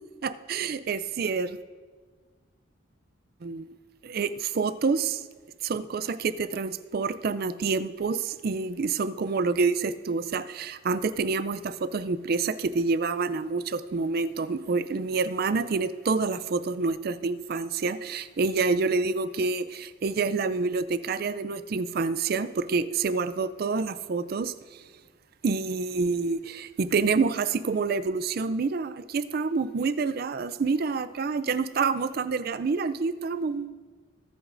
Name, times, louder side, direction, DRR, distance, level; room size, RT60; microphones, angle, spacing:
voice 1, 0.2-1.6 3.4-3.7 4.0-5.2 5.6-24.8 25.4-33.8, right 4 dB, 50° right, 14 dB, 0.4 m, -28 dB
21.5 x 8.0 x 2.6 m, 1.5 s
head